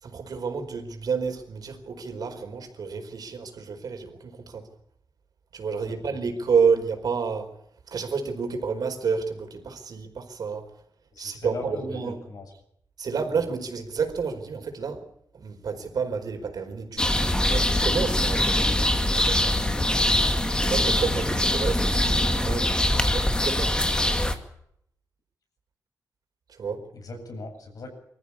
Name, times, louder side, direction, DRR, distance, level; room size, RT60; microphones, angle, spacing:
voice 1, 0.0-4.7 5.5-7.5 7.9-10.7 11.2-12.2 13.0-15.1 15.3-18.6 18.9-19.4 20.7-23.8 26.5-26.9, right 5 dB, 75° right, 5 dB, 4.7 m, -30 dB
voice 2, 5.9-6.2 11.1-12.5 20.0-20.2 21.0-21.1 26.9-27.9, left 2 dB, 70° left, 4 dB, 7.9 m, -39 dB
sound 1, 17.0-24.4, left 1 dB, 15° left, 2.2 m, -23 dB
25.5 x 14.5 x 8.6 m, 0.72 s
wide cardioid pair, 145°, 7 cm